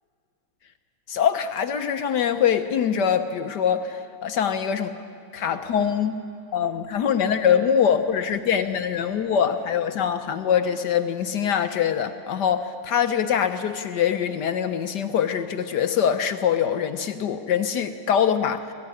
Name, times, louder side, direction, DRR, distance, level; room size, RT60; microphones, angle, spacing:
voice 1, 1.1-4.9 5.3-6.2 6.5-18.6, left 8 dB, 65° left, 9 dB, 1.3 m, -23 dB
19.0 x 15.5 x 9.7 m, 2.5 s
omnidirectional pair, 2.1 m